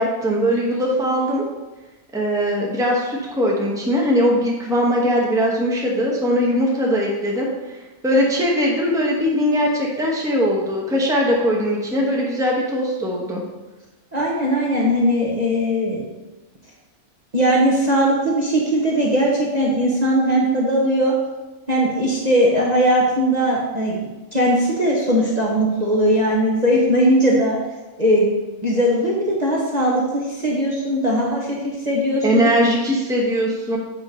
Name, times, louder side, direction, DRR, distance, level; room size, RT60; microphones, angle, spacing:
voice 1, 0.0-1.4 2.1-7.5 8.0-13.4 32.2-33.8, equal, 5° right, -3 dB, 1.1 m, -20 dB
voice 2, 14.1-16.0 17.3-21.1 21.7-27.6 28.0-28.3 28.6-31.6 31.8-32.5, equal, 30° right, -4 dB, 1.1 m, -19 dB
7.8 x 3.7 x 5.6 m, 1.1 s
omnidirectional pair, 1.5 m